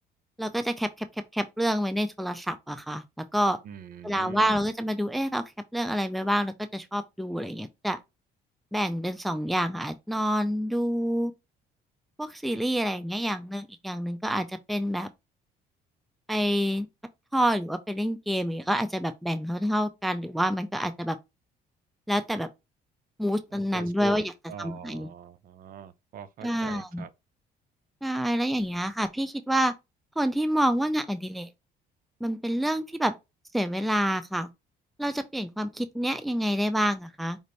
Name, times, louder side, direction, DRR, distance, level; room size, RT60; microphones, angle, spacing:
voice 1, 0.4-1.1 1.3-3.0 3.3-3.6 4.0-5.4 5.7-8.0 8.7-11.3 12.2-15.1 16.3-16.9 17.3-21.2 22.1-22.5 23.2-24.3 24.6-25.1 26.4-27.0 28.0-29.7 30.2-31.5 32.2-33.1 33.5-34.5 35.0-37.4, equal, ahead, 0.4 m, -27 dB
voice 2, 3.6-4.6 23.5-27.1, right 8 dB, 55° right, 0.6 m, -44 dB
5.2 x 2.6 x 3.1 m
cardioid pair, 110°, 17 cm